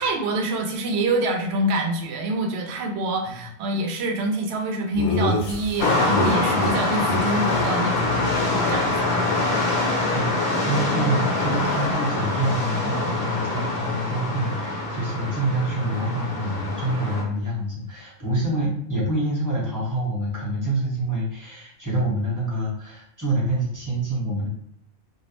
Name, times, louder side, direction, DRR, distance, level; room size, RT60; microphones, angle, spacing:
voice 1, 0.0-8.2 8.7-9.1, right 1 dB, 65° right, 2 dB, 0.7 m, -26 dB
Laughter, 5.0-6.7 7.0-7.2 7.5-7.7 8.0-9.5, left 2 dB, 80° left, 1.0 m, -28 dB
sound 1, 5.8-17.2, left 2 dB, 60° left, 0.8 m, -24 dB
voice 2, 10.1-24.5, right 1 dB, 15° right, -6 dB, 0.9 m, -26 dB
2.4 x 2.0 x 2.9 m, 0.73 s
omnidirectional pair, 1.5 m